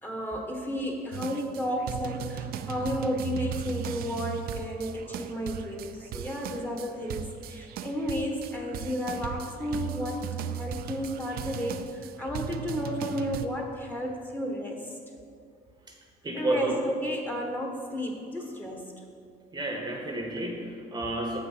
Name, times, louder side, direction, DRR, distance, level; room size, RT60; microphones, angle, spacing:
voice 1, 0.0-15.0 16.3-18.9 20.4-20.5, equal, 10° left, 0 dB, 1.2 m, -33 dB
sound 1, 1.1-13.5, right 9 dB, 65° right, 0.4 m, -37 dB
voice 2, 16.2-16.8 19.5-21.4, right 2 dB, 25° right, 2 dB, 0.9 m, -30 dB
7.2 x 6.0 x 5.6 m, 2.3 s
cardioid pair, 110°, 17 cm